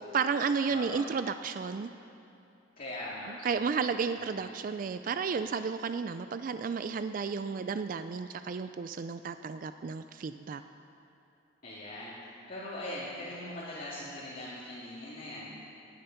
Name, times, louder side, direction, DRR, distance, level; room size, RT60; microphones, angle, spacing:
voice 1, 0.0-1.9 3.3-10.6, right 5 dB, 45° right, 10 dB, 0.3 m, -32 dB
voice 2, 0.7-1.0 2.8-3.3 4.1-4.5 11.6-15.5, left 1 dB, 45° left, -10 dB, 2.2 m, -41 dB
18.5 x 8.9 x 5.7 m, 2.7 s
head